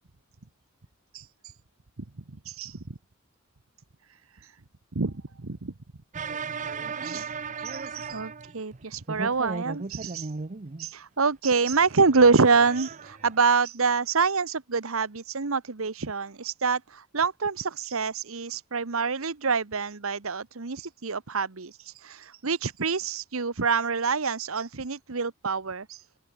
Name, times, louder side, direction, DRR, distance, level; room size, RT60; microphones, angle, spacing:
voice 1, 1.1-1.5 2.4-2.8 4.4-4.5 4.9-5.7 7.0-10.3 10.8-26.1, right 4 dB, 75° right, 1.1 m, -26 dB
sound 1, 6.1-8.8 9.1-10.9 11.7-13.4, right 4 dB, 35° right, 0.7 m, -36 dB
open air
head